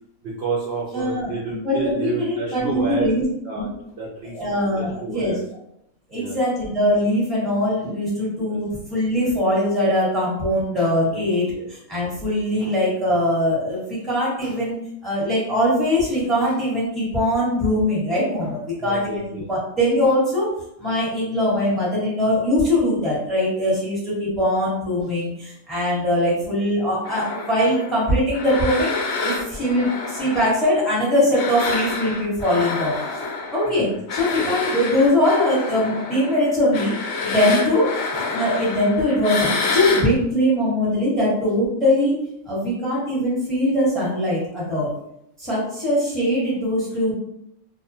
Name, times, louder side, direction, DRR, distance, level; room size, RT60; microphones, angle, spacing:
voice 1, 0.2-3.1 3.4-3.7 4.0-5.4 6.1-6.4 8.4-8.6 11.0-11.7 18.8-19.5 33.7-34.0 34.3-34.5, right 4 dB, 60° right, -5 dB, 0.6 m, -31 dB
voice 2, 0.9-3.2 3.5-3.7 4.3-5.3 6.1-14.8 15.0-20.5 20.8-28.9 29.2-36.9 37.2-42.1 42.5-44.9 45.4-47.1, left 1 dB, ahead, -7 dB, 0.8 m, -21 dB
sound 1, 27.0-31.0 31.3-40.1, left 4 dB, 70° left, 0.7 m, -28 dB
2.5 x 2.3 x 2.6 m, 0.77 s
omnidirectional pair, 1.6 m